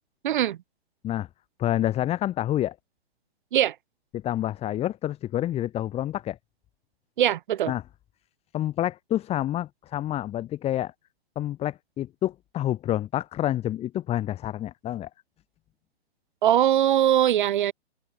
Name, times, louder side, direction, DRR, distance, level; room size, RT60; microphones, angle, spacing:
voice 1, 0.2-0.6 3.5-3.7 7.2-7.7 16.4-17.7, right 11 dB, 45° right, 3.0 m, -21 dB
voice 2, 1.6-2.8 4.1-6.4 7.7-7.8 8.5-10.9 11.4-15.1, left 13 dB, 20° left, 3.6 m, -28 dB
figure-of-eight pair, 125°, 33 cm